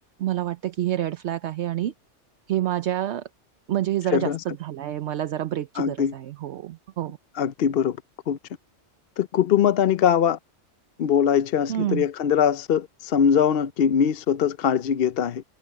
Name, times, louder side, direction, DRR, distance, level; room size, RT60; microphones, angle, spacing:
voice 1, 0.2-1.9 2.5-3.2 3.7-4.3 4.6-7.2 11.7-12.0, right 12 dB, 70° right, 0.9 m, -27 dB
voice 2, 4.1-4.4 5.8-6.1 7.3-8.0 8.3-8.4 9.2-10.4 11.0-15.4, left 8 dB, 60° left, 0.8 m, -22 dB
omnidirectional pair, 1.3 m